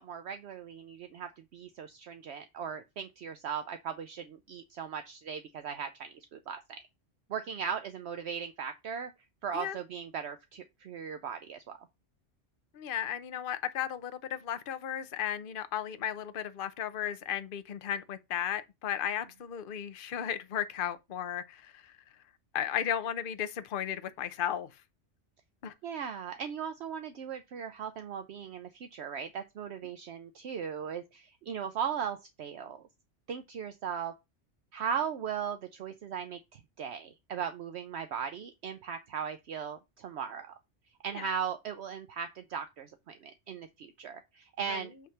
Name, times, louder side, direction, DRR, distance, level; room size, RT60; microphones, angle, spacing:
voice 1, 0.0-6.8 7.3-9.1 9.4-11.8 25.8-32.8 33.3-34.1 34.7-40.5 41.0-44.9, right 7 dB, 65° right, 0.9 m, -38 dB
voice 2, 12.7-21.9 22.5-24.7 25.6-25.7 41.1-41.3 44.7-44.8, left 10 dB, 50° left, 0.8 m, -35 dB
8.3 x 3.3 x 5.7 m
omnidirectional pair, 1.2 m